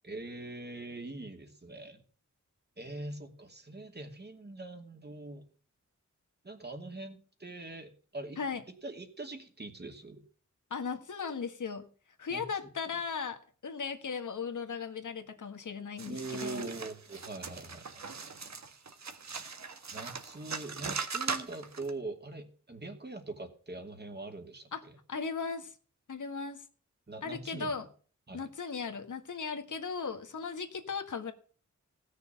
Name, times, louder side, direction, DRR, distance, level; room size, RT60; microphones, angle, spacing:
voice 1, 0.0-2.0 2.8-5.5 6.4-8.4 8.8-10.2 12.3-12.4 16.0-18.0 19.9-25.0 27.1-27.7 28.3-28.5, right 2 dB, 35° right, 5 dB, 2.6 m, -43 dB
voice 2, 10.7-11.9 12.2-16.7 24.7-24.8 25.1-25.7 26.1-26.6 27.2-27.8 28.3-31.3, left 5 dB, 85° left, 6 dB, 1.7 m, -37 dB
sound 1, 16.0-21.9, right 5 dB, 65° right, 1.6 m, -40 dB
16.5 x 6.6 x 7.2 m, 0.42 s
wide cardioid pair, 80°, 30 cm